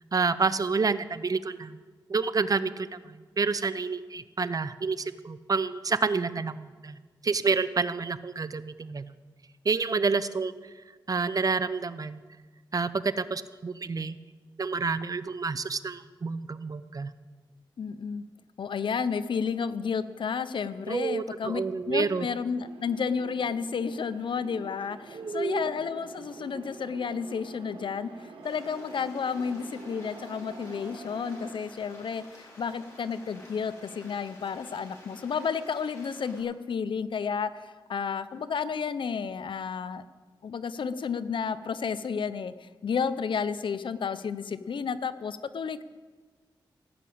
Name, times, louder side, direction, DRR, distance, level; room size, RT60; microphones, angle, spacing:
voice 1, 0.1-1.8 2.1-7.0 7.2-9.1 9.6-10.5 11.1-12.2 12.7-14.2 14.6-17.1 20.9-22.3 25.1-25.7, right 4 dB, 45° right, 14 dB, 0.6 m, -29 dB
voice 2, 17.8-18.2 18.6-28.1 28.4-40.0 40.4-45.8, left 6 dB, 70° left, 13 dB, 0.6 m, -31 dB
sound 1, 22.5-31.5, right 4 dB, 90° right, 1.5 m, -47 dB
Stream, 28.4-36.4, left 1 dB, 35° left, 5.0 m, -51 dB
17.0 x 6.2 x 8.7 m, 1.4 s
cardioid pair, 75°, 9 cm